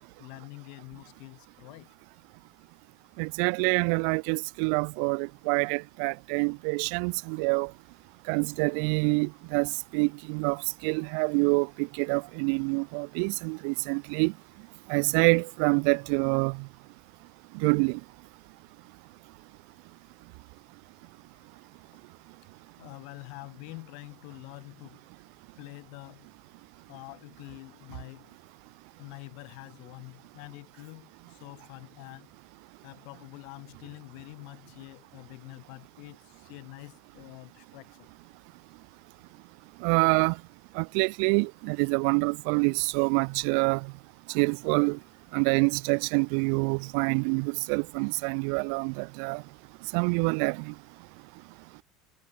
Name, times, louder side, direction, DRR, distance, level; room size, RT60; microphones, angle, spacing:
voice 1, 0.2-1.9 22.8-25.1 25.6-26.4 26.9-28.4 29.0-32.3 32.8-38.1, left 38 dB, 65° left, 5.5 m, -46 dB
voice 2, 3.2-7.7 8.3-14.3 14.9-16.7 17.5-18.0 39.8-40.4 40.7-43.9 44.3-45.0 45.3-49.4 49.9-50.7, right 40 dB or more, 65° right, 0.3 m, -26 dB
cardioid pair, 165°, 0 cm